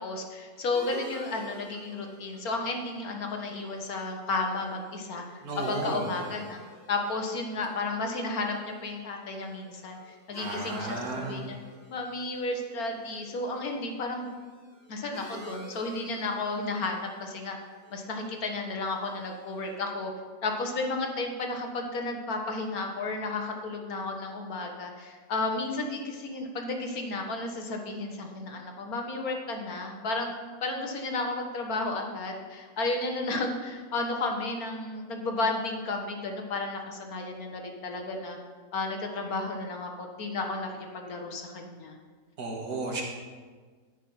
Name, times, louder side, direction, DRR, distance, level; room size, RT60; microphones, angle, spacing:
voice 1, 0.0-5.2 5.7-6.6 6.9-11.6 11.9-14.3 14.9-17.6 17.9-20.1 20.4-30.4 30.6-38.4 38.7-42.0, left 3 dB, 70° left, 3 dB, 1.8 m, -33 dB
sound 1, 0.7-19.9, right 1 dB, 60° right, 2.7 m, -50 dB
voice 2, 5.4-6.2 10.4-11.4 42.4-43.0, right 3 dB, 85° right, -1 dB, 2.2 m, -34 dB
14.0 x 6.2 x 5.7 m, 1.5 s
omnidirectional pair, 1.6 m